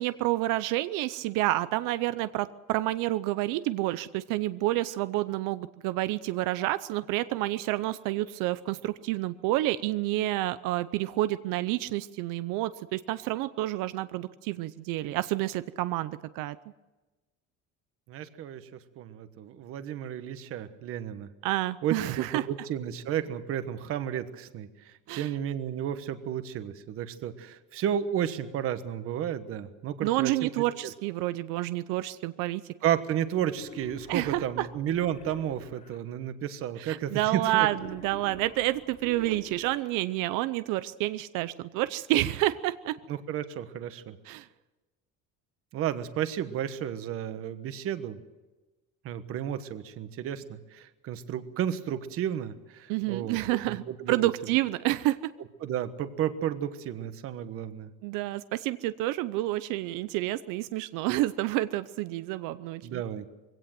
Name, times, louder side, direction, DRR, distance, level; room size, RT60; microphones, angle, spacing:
voice 1, 0.0-16.6 21.4-22.4 25.1-25.3 30.0-32.6 34.1-34.7 36.8-43.0 44.3-44.5 52.9-55.3 58.0-63.0, right 16 dB, 90° right, 14 dB, 0.7 m, -29 dB
voice 2, 18.1-21.3 21.8-30.9 32.8-37.7 43.1-44.2 45.7-48.2 49.0-54.3 55.6-57.9 62.8-63.3, right 10 dB, 45° right, 11 dB, 1.3 m, -32 dB
Wild animals, 33.5-36.0 37.5-40.0, left 4 dB, 25° left, 2.6 m, -47 dB
22.5 x 17.0 x 7.7 m, 1.1 s
cardioid pair, 180°, 31 cm